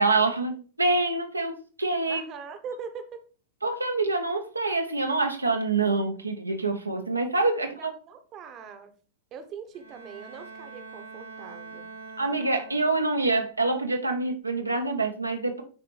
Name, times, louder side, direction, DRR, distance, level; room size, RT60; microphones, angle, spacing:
voice 1, 0.0-2.2 3.6-7.9 12.2-15.6, right 3 dB, 85° right, 0.7 m, -26 dB
voice 2, 2.1-3.2 7.6-8.9 9.3-11.9, right 6 dB, 35° right, 0.9 m, -42 dB
Bowed string instrument, 9.7-13.2, right 4 dB, 85° left, 1.4 m, -44 dB
9.7 x 4.2 x 3.2 m
figure-of-eight pair, 90°, 0 cm